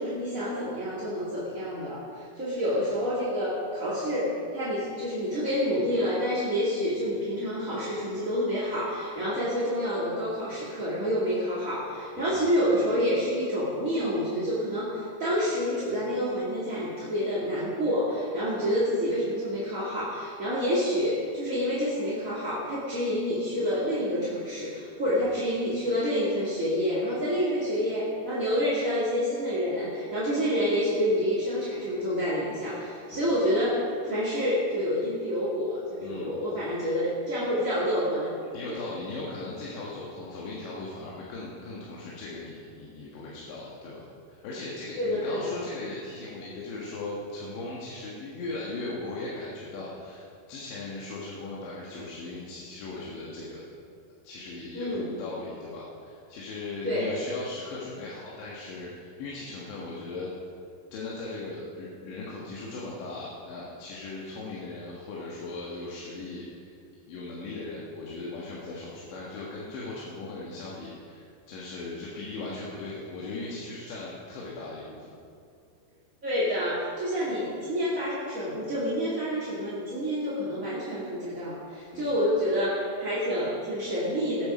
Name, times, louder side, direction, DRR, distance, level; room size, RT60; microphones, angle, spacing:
voice 1, 0.0-38.3 38.7-38.8 45.0-45.5 54.7-55.1 56.8-57.1 76.2-84.5, equal, 25° right, -9 dB, 1.8 m, -28 dB
voice 2, 38.5-53.6 54.2-60.3 60.9-66.7 67.1-75.1 81.9-82.1, left 2 dB, 85° left, -5 dB, 3.9 m, -38 dB
18.5 x 9.0 x 5.5 m, 2.4 s
omnidirectional pair, 5.0 m